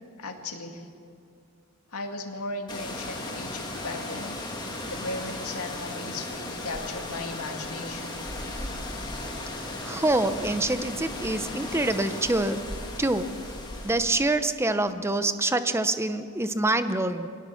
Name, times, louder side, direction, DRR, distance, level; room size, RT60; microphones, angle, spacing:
voice 1, 0.2-0.8 1.9-4.4 4.9-8.2, left 2 dB, 80° left, 4 dB, 2.2 m, -36 dB
sound 1, 2.7-14.4, left 2 dB, 20° left, 2.4 m, -36 dB
voice 2, 9.5-12.6 13.0-13.3 13.8-17.3, right 2 dB, 10° right, 10 dB, 0.7 m, -26 dB
24.0 x 19.0 x 7.1 m, 2.5 s
head